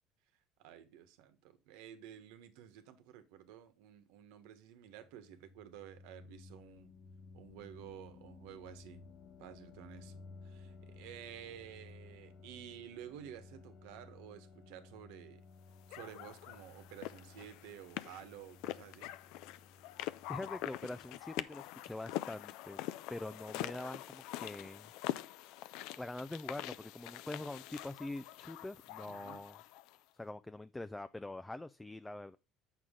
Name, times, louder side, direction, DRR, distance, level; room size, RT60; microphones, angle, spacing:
voice 1, 0.6-6.9 7.3-9.0 9.4-15.4 15.9-19.1 29.1-29.5, right 10 dB, 85° right, 1.2 m, -52 dB
sound 1, 4.9-21.6, left 4 dB, 55° left, 1.2 m, -57 dB
sound 2, 15.9-30.0, left 15 dB, 75° left, 0.5 m, -44 dB
voice 2, 20.3-22.8 23.1-24.9 26.0-29.6 30.2-32.4, left 2 dB, 10° left, 0.4 m, -44 dB
8.3 x 6.3 x 3.7 m
cardioid pair, 115°, 0 cm